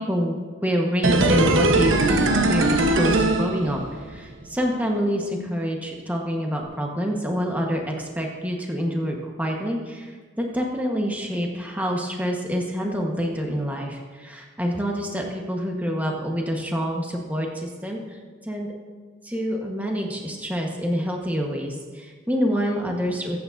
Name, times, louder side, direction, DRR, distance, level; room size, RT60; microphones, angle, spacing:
voice 1, 0.0-2.1 2.5-3.8 4.1-10.1 10.4-18.0 18.4-18.7 19.2-23.4, equal, 10° right, 0 dB, 1.2 m, -27 dB
sound 1, 1.0-4.2 4.4-4.5, right 2 dB, 85° right, 0.9 m, -20 dB
21.0 x 8.8 x 2.6 m, 1.5 s
head